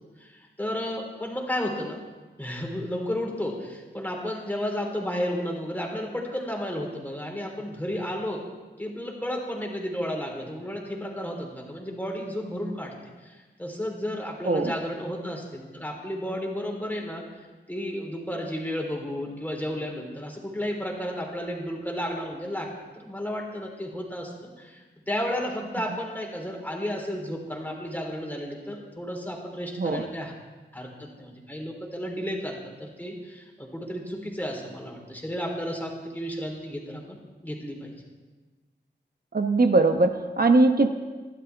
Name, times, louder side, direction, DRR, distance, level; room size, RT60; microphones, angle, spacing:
voice 1, 0.2-2.0 2.4-8.4 8.8-12.9 13.2-17.2 17.7-30.3 30.7-37.9, equal, 10° left, 0 dB, 3.6 m, -33 dB
voice 2, 39.3-40.9, right 3 dB, 50° right, 5 dB, 1.0 m, -21 dB
27.0 x 12.0 x 3.5 m, 1.3 s
wide cardioid pair, 95°, 19 cm